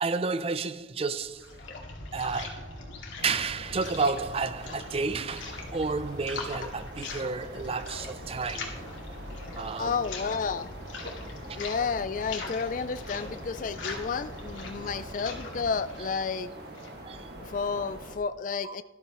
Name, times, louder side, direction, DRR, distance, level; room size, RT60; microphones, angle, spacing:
voice 1, 0.0-1.6 2.1-2.8 3.2-8.8 9.5-10.0 11.5-11.6 17.0-17.3 18.6-18.8, right 4 dB, 30° right, 0.4 m, -31 dB
sound 1, 1.1-17.0, left 3 dB, 85° left, 2.2 m, -41 dB
sound 2, 3.2-18.2, right 1 dB, 55° right, 1.7 m, -45 dB
voice 2, 9.8-10.7 11.6-16.5 17.4-18.8, left 5 dB, 40° left, 0.3 m, -31 dB
13.0 x 13.0 x 3.0 m
head